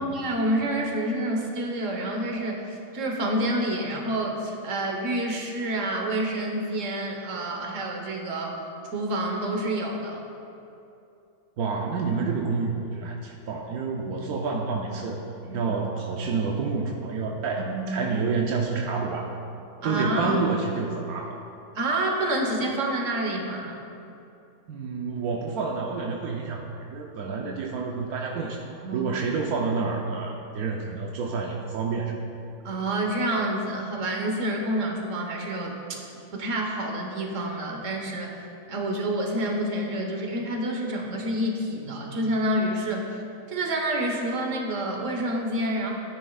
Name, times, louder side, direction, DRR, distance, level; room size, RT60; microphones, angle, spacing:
voice 1, 0.0-8.6 8.9-10.2 15.4-15.6 17.6-17.8 19.8-20.4 21.7-23.8 28.8-29.1 32.6-36.0 36.3-38.4 38.7-43.1 43.5-45.9, right 1 dB, 60° right, 1 dB, 1.5 m, -28 dB
voice 2, 11.6-15.2 15.5-19.3 19.8-21.4 24.7-32.1, right 4 dB, 85° right, 0 dB, 1.2 m, -29 dB
14.5 x 9.8 x 2.4 m, 2.7 s
omnidirectional pair, 1.5 m